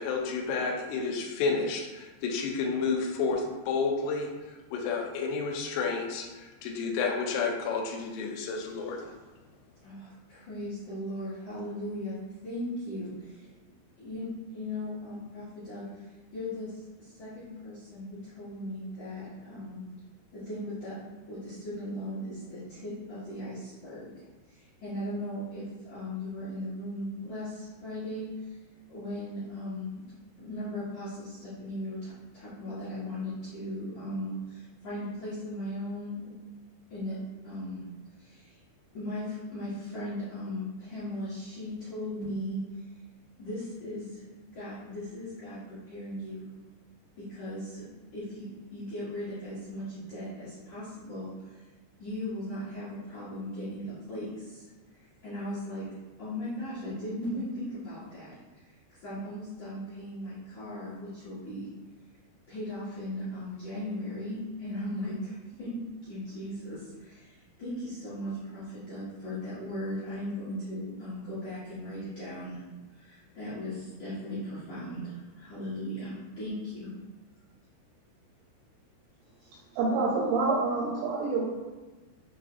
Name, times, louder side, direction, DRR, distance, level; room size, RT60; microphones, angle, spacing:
voice 1, 0.0-9.1, left 4 dB, 85° left, 2 dB, 3.0 m, -31 dB
voice 2, 9.8-12.2 12.4-13.5 14.0-14.3 14.5-19.8 20.3-21.0 21.3-28.6 28.9-29.9 30.4-36.2 36.9-37.2 37.4-37.8 38.2-38.6 38.9-42.6 43.4-46.5 47.2-47.9 48.1-51.7 52.0-54.7 55.2-55.8 56.2-61.7 62.5-65.8 66.0-72.6 72.9-76.9 79.4-79.6, left 1 dB, 70° left, -14 dB, 1.8 m, -38 dB
voice 3, 79.8-81.4, right 3 dB, 85° right, -5 dB, 2.3 m, -27 dB
7.2 x 2.4 x 2.4 m, 1.2 s
omnidirectional pair, 5.5 m